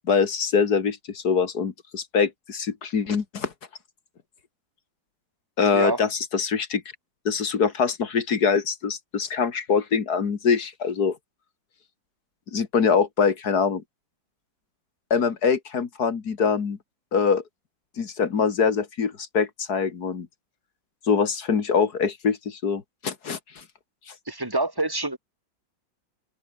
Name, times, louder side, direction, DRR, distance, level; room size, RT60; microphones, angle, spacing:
voice 1, 0.1-3.5 5.6-6.8 7.3-11.2 12.5-13.8 15.1-16.8 17.1-17.4 18.0-20.3 21.0-23.6 24.1-24.2, left 6 dB, 55° left, 2.3 m, -24 dB
voice 2, 24.3-25.2, right 2 dB, 10° right, 3.6 m, -26 dB
open air
omnidirectional pair, 2.0 m